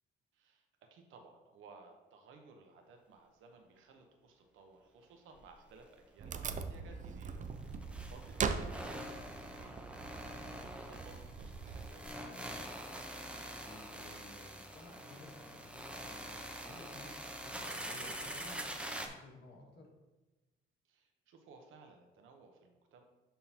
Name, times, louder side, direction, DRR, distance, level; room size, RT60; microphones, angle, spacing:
voice 1, 0.3-7.5 8.1-12.7 20.8-23.0, right 4 dB, 85° right, 4 dB, 1.0 m, -59 dB
sound 1, 5.4-5.5 5.8-5.9 7.4-19.1, right 1 dB, 5° right, 0.8 m, -45 dB
Wood, 6.2-11.9, right 5 dB, 40° right, 0.5 m, -41 dB
voice 2, 13.5-17.1 17.4-19.9, left 2 dB, 55° left, -1 dB, 1.9 m, -55 dB
11.0 x 3.8 x 2.9 m, 1.1 s
cardioid pair, 90°, 20 cm